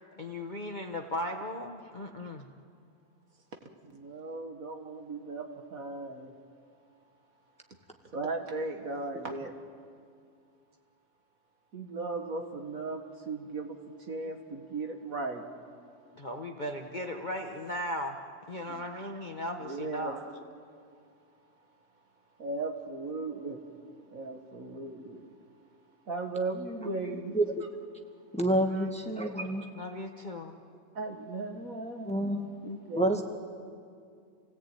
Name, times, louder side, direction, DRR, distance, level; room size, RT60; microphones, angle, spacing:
voice 1, 0.0-2.5 16.1-18.2 18.5-20.2 29.7-30.6, left 1 dB, 30° left, 3 dB, 1.0 m, -37 dB
voice 2, 3.6-6.3 8.1-9.5 11.7-15.5 18.7-18.8 19.6-20.2 22.4-23.6 24.0-25.3 26.1-27.4 28.7-28.9 30.9-33.2, right 3 dB, 50° right, 4 dB, 2.0 m, -37 dB
voice 3, 28.3-29.7 32.0-32.4 32.9-33.2, right 1 dB, 5° left, 2 dB, 1.5 m, -28 dB
28.0 x 18.0 x 9.0 m, 2.3 s
omnidirectional pair, 1.9 m